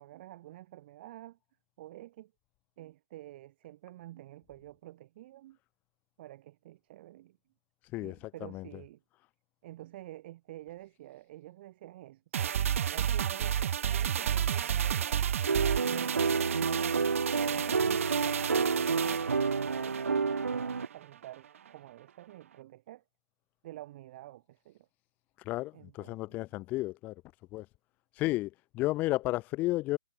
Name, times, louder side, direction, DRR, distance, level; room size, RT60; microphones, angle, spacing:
voice 1, 0.0-1.4 1.8-2.3 2.8-5.6 6.2-7.4 7.9-9.0 9.6-12.5 12.9-15.2 15.8-23.0 23.6-24.9 25.7-26.4, right 15 dB, 40° right, 2.7 m, -49 dB
voice 2, 7.9-8.7 25.5-27.1 27.5-27.7 28.2-30.0, left 19 dB, 20° left, 0.4 m, -32 dB
sound 1, 12.3-20.9 21.2-21.3, right 9 dB, 55° right, 0.5 m, -32 dB
sound 2, 15.5-20.9, right 5 dB, 85° right, 1.4 m, -29 dB
hypercardioid pair, 140°, 8 cm